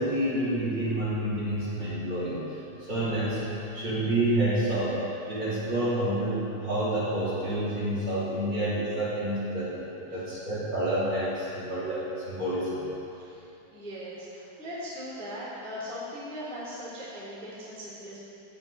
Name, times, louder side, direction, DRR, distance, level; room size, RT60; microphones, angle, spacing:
voice 1, 0.0-3.4 3.7-5.0 5.3-12.8, right 1 dB, 25° right, -10 dB, 3.9 m, -29 dB
voice 2, 13.1-18.2, equal, ahead, -9 dB, 2.8 m, -39 dB
17.5 x 12.0 x 4.4 m, 2.8 s
omnidirectional pair, 5.7 m